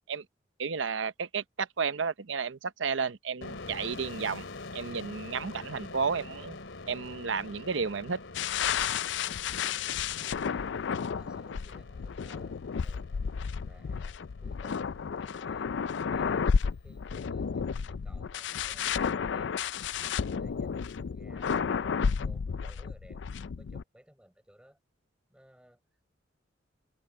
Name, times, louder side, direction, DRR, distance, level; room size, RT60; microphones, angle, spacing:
voice 1, 0.6-4.4 4.7-6.6 6.9-8.2, right 5 dB, 80° right, 0.7 m, -32 dB
sound 1, 3.4-16.8, left 3 dB, 90° left, 2.7 m, -46 dB
sound 2, 8.3-23.8, left 6 dB, 65° left, 0.4 m, -32 dB
voice 2, 10.5-12.6 12.8-13.2 13.6-14.9 15.2-15.7 16.1-19.5 20.2-24.8 25.3-26.1, equal, 5° right, 5.3 m, -59 dB
head